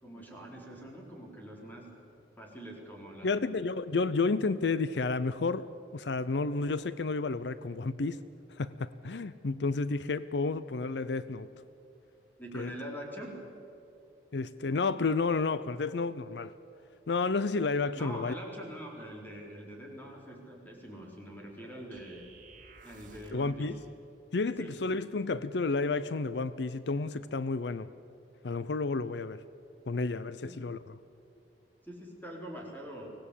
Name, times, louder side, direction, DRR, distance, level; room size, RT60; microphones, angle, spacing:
voice 1, 0.0-1.9 2.4-3.5 12.4-13.4 17.9-22.3 22.8-23.7 24.6-24.8 30.4-30.6 31.8-33.1, equal, 10° left, -1 dB, 4.3 m, -44 dB
voice 2, 3.2-8.2 8.5-11.5 12.5-12.7 14.3-16.5 17.1-18.4 23.3-23.8 24.3-27.9 28.4-29.4 29.9-30.9, left 3 dB, 75° left, 15 dB, 0.6 m, -31 dB
sound 1, 21.9-23.5, right 4 dB, 50° right, 2.0 m, -54 dB
24.0 x 18.0 x 8.5 m, 2.8 s
head